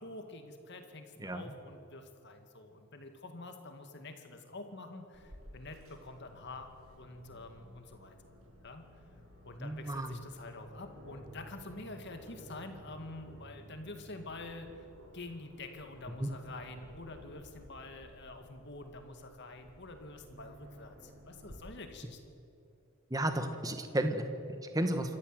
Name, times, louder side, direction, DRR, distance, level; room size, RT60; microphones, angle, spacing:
voice 1, 0.0-6.7 7.0-8.2 8.6-8.8 9.4-14.8 15.1-22.2, left 2 dB, 55° left, 6 dB, 2.1 m, -47 dB
voice 2, 1.2-1.5 9.6-10.2 16.2-16.3 23.1-25.2, right 1 dB, 15° right, 7 dB, 1.4 m, -33 dB
Aircraft, 5.1-21.5, equal, 80° right, 6.0 m, -55 dB
26.0 x 14.0 x 7.9 m, 2.7 s
head